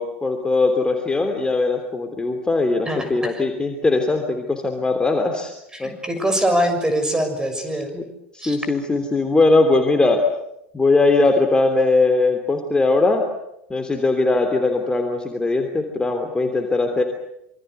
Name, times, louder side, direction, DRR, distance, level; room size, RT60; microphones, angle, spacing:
voice 1, 0.0-5.5 5.8-5.9 7.9-8.0 8.3-10.3 10.7-13.3 13.7-17.0, left 3 dB, 15° left, 4 dB, 3.2 m, -20 dB
voice 2, 2.9-3.4 5.7-7.9 8.4-8.6, right 1 dB, 10° right, 7 dB, 6.6 m, -23 dB
27.0 x 24.5 x 6.9 m, 0.80 s
figure-of-eight pair, 75°, 6 cm